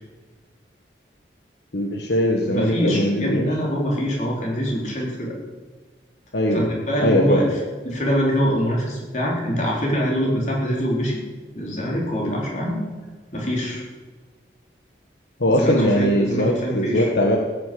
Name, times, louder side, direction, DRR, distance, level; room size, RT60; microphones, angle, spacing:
voice 1, 1.7-3.7 6.3-6.6 7.0-7.5 15.4-17.4, equal, 65° left, 1 dB, 1.4 m, -20 dB
voice 2, 2.4-5.4 6.5-7.5 7.8-11.2 11.5-12.8 13.3-13.8 15.5-17.1, equal, 40° left, -2 dB, 4.2 m, -24 dB
16.0 x 10.0 x 6.9 m, 1.4 s
head